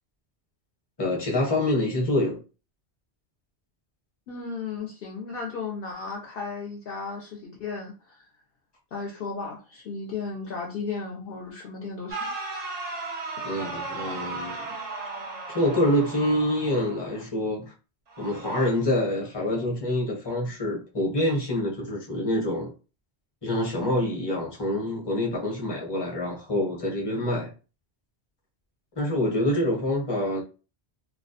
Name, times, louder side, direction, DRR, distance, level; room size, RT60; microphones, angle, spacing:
voice 1, 1.0-2.4 13.4-14.6 15.5-17.7 18.2-22.7 23.4-27.5 29.0-30.4, left 1 dB, 25° left, 0.7 m, -26 dB
voice 2, 4.3-8.2 8.9-12.3, left 4 dB, 60° left, 0.7 m, -35 dB
sound 1, 12.1-17.2 18.1-18.7, right 3 dB, 50° right, 0.5 m, -36 dB
2.3 x 2.1 x 2.7 m
omnidirectional pair, 1.2 m